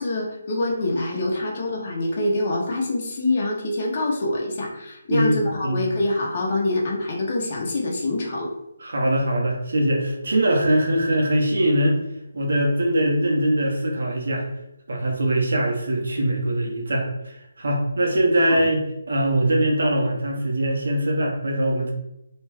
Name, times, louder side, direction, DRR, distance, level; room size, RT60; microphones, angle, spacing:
voice 1, 0.0-8.5 18.5-18.6, left 2 dB, 40° left, -2 dB, 0.7 m, -25 dB
voice 2, 5.1-5.8 8.8-12.0 12.3-14.5 14.9-21.9, right 1 dB, 70° right, -1 dB, 0.7 m, -22 dB
2.4 x 2.2 x 3.3 m, 0.86 s
figure-of-eight pair, 160°, 0 cm